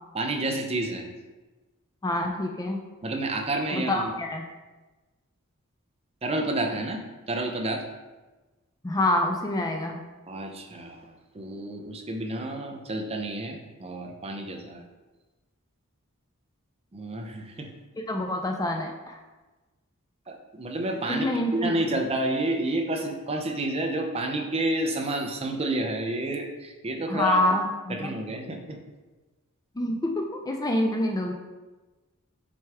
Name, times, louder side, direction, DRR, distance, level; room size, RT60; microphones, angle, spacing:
voice 1, 0.1-1.1 3.0-4.1 6.2-7.0 7.3-7.8 10.3-14.8 16.9-17.7 20.3-27.5 27.9-28.8, right 2 dB, 30° right, 3 dB, 0.6 m, -30 dB
voice 2, 2.0-2.8 3.7-4.4 8.8-10.0 18.1-19.2 21.1-22.0 27.1-28.1 29.8-31.3, left 1 dB, 15° left, 3 dB, 0.4 m, -26 dB
6.2 x 4.5 x 3.5 m, 1.2 s
head